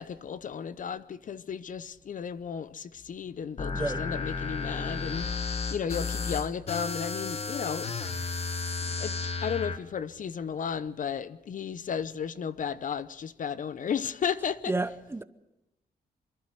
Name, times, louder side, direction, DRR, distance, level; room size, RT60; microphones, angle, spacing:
voice 1, 0.0-7.9 8.3-8.5 8.8-14.7, left 7 dB, 55° left, 0.8 m, -34 dB
sound 1, 3.6-9.8, left 4 dB, 40° left, 1.5 m, -33 dB
voice 2, 3.7-4.0 14.7-15.2, right 2 dB, 15° right, 0.8 m, -31 dB
26.0 x 11.5 x 9.2 m
cardioid pair, 100°, 16 cm